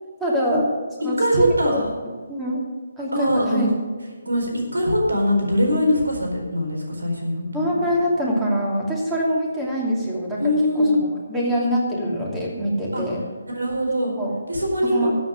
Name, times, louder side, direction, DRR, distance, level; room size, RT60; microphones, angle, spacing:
voice 1, 0.2-0.6 1.0-1.5 2.3-2.6 3.0-3.7 5.7-5.8 7.5-10.4 10.7-13.2 14.2-14.3 14.9-15.1, equal, 10° right, -4 dB, 2.8 m, -24 dB
voice 2, 1.0-1.9 3.1-3.7 4.2-7.8 10.4-11.1 12.9-13.0 13.5-14.1 14.5-15.1, equal, 90° right, 0 dB, 4.4 m, -22 dB
13.5 x 7.6 x 6.6 m, 1.4 s
figure-of-eight pair, 150°, 0 cm